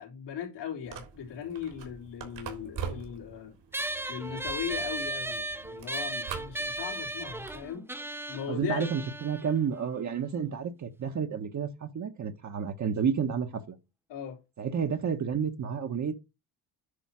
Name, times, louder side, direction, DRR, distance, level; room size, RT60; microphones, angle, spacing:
voice 1, 0.0-3.6 4.1-7.9 8.3-8.9 14.1-14.4, left 8 dB, 85° left, 3.6 m, -38 dB
sound 1, 0.8-7.7, right 7 dB, 80° right, 3.7 m, -43 dB
sound 2, 3.7-10.5, right 1 dB, 5° right, 0.7 m, -36 dB
voice 2, 8.5-13.8 14.6-16.1, right 7 dB, 45° right, 1.2 m, -30 dB
10.0 x 4.6 x 6.2 m
cardioid pair, 100°, 41 cm